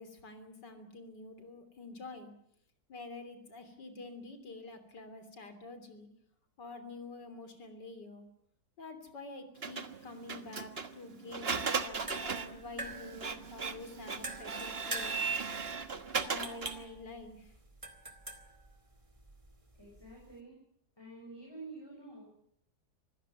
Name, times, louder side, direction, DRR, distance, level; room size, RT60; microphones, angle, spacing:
voice 1, 0.0-2.3 2.9-6.1 6.6-8.3 8.8-15.1 16.2-17.5, left 3 dB, 75° left, 9 dB, 3.8 m, -48 dB
Printer, 9.6-16.8, right 5 dB, 35° right, 1.5 m, -37 dB
sound 1, 11.8-20.4, right 2 dB, 20° right, 2.2 m, -46 dB
voice 2, 19.7-20.6 21.0-22.2, right 3 dB, 15° left, -2 dB, 7.0 m, -49 dB
25.5 x 16.0 x 9.3 m, 0.72 s
omnidirectional pair, 1.9 m